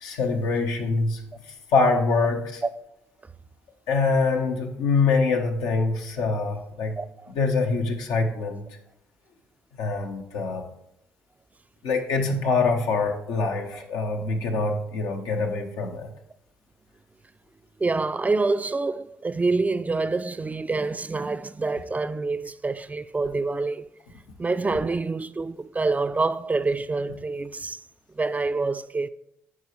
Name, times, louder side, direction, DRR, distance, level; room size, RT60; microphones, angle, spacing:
voice 1, 0.0-1.3 1.7-2.6 3.9-6.9 7.3-8.6 9.8-10.6 11.8-16.1, left 4 dB, 80° left, 0.9 m, -24 dB
voice 2, 17.8-23.9 24.4-27.8 28.2-29.1, right 3 dB, 25° right, 0.3 m, -26 dB
9.6 x 4.9 x 3.1 m
hypercardioid pair, 50°, 6 cm